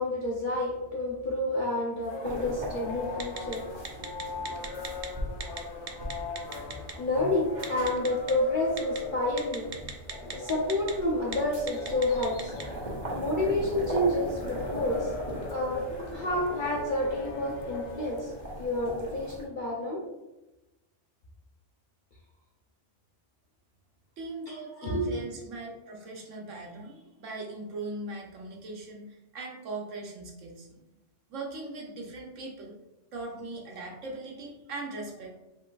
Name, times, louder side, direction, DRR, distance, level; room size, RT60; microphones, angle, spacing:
voice 1, 0.0-3.6 4.8-4.9 6.4-6.5 7.0-9.7 10.2-12.5 13.1-15.1 15.5-15.8 16.1-18.3 18.6-20.0 24.5-25.2, left 1 dB, 45° left, -3 dB, 0.8 m, -29 dB
sound 1, 2.0-19.0, left 3 dB, 70° left, 0.9 m, -41 dB
pot boiling, 2.2-19.4, right 1 dB, 40° right, 1.2 m, -40 dB
Telephone, 3.2-3.6 3.8-5.1 5.4-5.6 5.9-6.9 7.6-8.3 8.8-9.0 9.4-10.9 11.2-11.4 11.7-12.6, right 6 dB, 55° right, 0.4 m, -36 dB
voice 2, 24.2-30.8 31.3-32.8 33.1-35.4, right 2 dB, 80° right, -1 dB, 1.3 m, -40 dB
5.4 x 3.9 x 2.4 m, 1.0 s
omnidirectional pair, 1.3 m